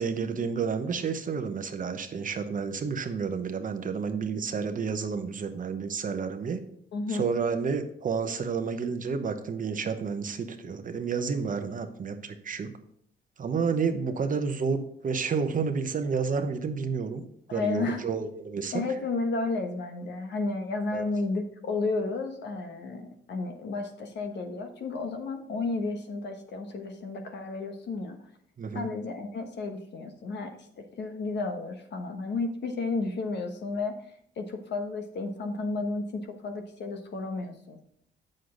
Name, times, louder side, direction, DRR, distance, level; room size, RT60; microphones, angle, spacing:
voice 1, 0.0-6.6 7.1-12.7 13.4-17.2 17.5-18.8 20.9-21.0 28.6-28.9, right 5 dB, 40° right, 8 dB, 0.9 m, -30 dB
voice 2, 6.9-7.3 17.5-18.0 18.7-28.3 28.7-34.0 34.4-37.8, left 3 dB, 60° left, 6 dB, 1.2 m, -32 dB
7.7 x 6.5 x 3.8 m, 0.69 s
cardioid pair, 90°, 20 cm